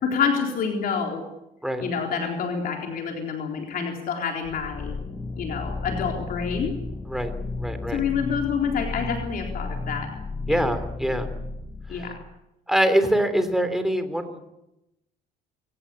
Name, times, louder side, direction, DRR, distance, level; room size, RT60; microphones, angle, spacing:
voice 1, 0.0-1.3 1.8-4.9 5.4-6.7 7.9-10.1 10.5-10.7 11.9-12.2, left 6 dB, 60° left, 2 dB, 4.0 m, -27 dB
sound 1, 4.4-12.3, left 3 dB, 20° left, 1.0 m, -33 dB
voice 2, 7.6-8.0 10.5-11.3 11.9-12.1 12.7-14.4, equal, ahead, 8 dB, 3.4 m, -24 dB
24.0 x 17.5 x 8.6 m, 0.90 s
cardioid pair, 110°, 17 cm